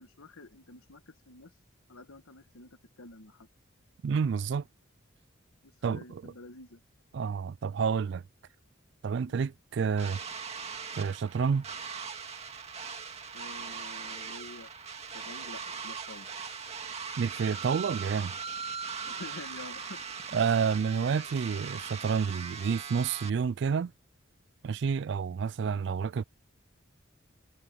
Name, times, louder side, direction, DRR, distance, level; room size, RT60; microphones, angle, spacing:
voice 1, 0.0-1.5 1.9-3.5 5.6-6.8 9.3-9.4 13.3-14.7 15.1-16.3 19.1-20.0, left 2 dB, 85° left, 1.4 m, -48 dB
voice 2, 4.0-4.7 5.8-6.3 7.1-8.2 9.0-10.2 11.0-11.6 17.2-18.3 20.3-23.9 24.6-26.2, right 6 dB, 55° right, 0.3 m, -29 dB
sound 1, 10.0-23.3, right 6 dB, 30° right, 2.1 m, -40 dB
head